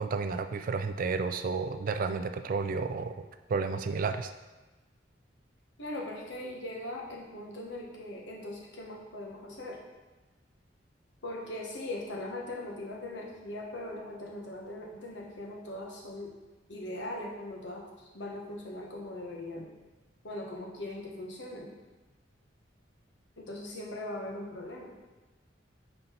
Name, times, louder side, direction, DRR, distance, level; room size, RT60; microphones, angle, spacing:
voice 1, 0.0-3.2 3.5-4.3, right 4 dB, 50° right, 9 dB, 0.4 m, -31 dB
voice 2, 5.8-9.8 11.2-16.3 16.7-17.8 18.1-19.7 20.2-21.7 23.4-24.9, left 1 dB, 75° left, -2 dB, 1.2 m, -40 dB
5.5 x 3.9 x 4.5 m, 1.2 s
head